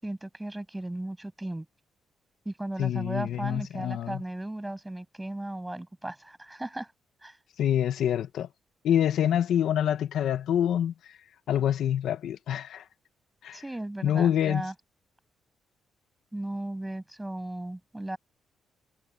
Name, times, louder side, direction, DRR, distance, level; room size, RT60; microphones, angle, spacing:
voice 1, 0.0-1.7 2.4-6.9 7.2-7.4 13.5-14.7 16.3-18.2, right 1 dB, 10° right, 7.9 m, -36 dB
voice 2, 2.8-4.2 7.6-8.5 8.8-10.9 11.5-12.8 13.4-13.6 14.0-14.7, left 10 dB, 80° left, 2.0 m, -26 dB
cardioid pair, 120°, 0 cm